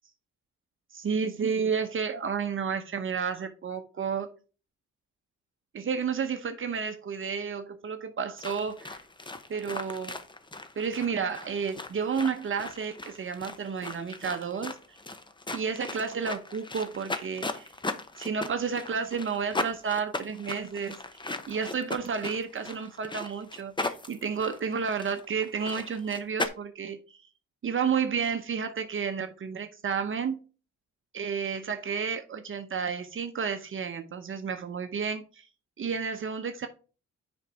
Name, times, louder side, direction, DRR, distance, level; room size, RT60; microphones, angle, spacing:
voice 1, 1.0-4.3 5.7-9.0 9.5-10.2 10.8-15.0 15.5-17.7 18.2-21.0 21.5-27.2 27.6-30.4 31.1-35.5 35.8-36.7, right 6 dB, 45° right, 0.9 m, -31 dB
sound 1, 8.4-26.5, left 2 dB, 15° left, 0.8 m, -38 dB
6.5 x 5.3 x 4.6 m
cardioid pair, 90°, 30 cm